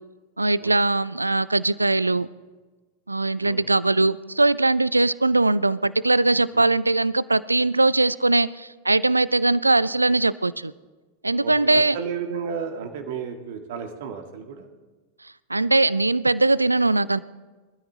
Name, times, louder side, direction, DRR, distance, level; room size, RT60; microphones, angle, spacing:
voice 1, 0.4-2.3 3.1-10.7 11.2-12.0 15.5-17.2, right 2 dB, 80° right, 20 dB, 0.4 m, -21 dB
voice 2, 11.4-14.7, right 6 dB, 50° right, 5 dB, 1.8 m, -33 dB
24.0 x 13.0 x 2.9 m, 1.3 s
figure-of-eight pair, 90°, 0 cm